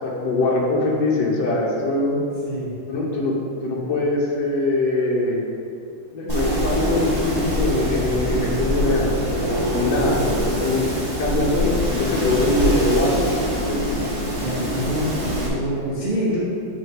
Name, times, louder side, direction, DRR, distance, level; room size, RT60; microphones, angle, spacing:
voice 1, 0.0-2.2 2.9-3.3 3.6-5.4 6.1-13.9, left 2 dB, 60° left, -4 dB, 1.4 m, -22 dB
Wind, 6.3-15.5, equal, 25° right, 0.9 m, -24 dB
voice 2, 14.3-16.4, equal, 55° right, -8 dB, 0.5 m, -26 dB
6.3 x 3.7 x 5.8 m, 2.5 s
omnidirectional pair, 2.4 m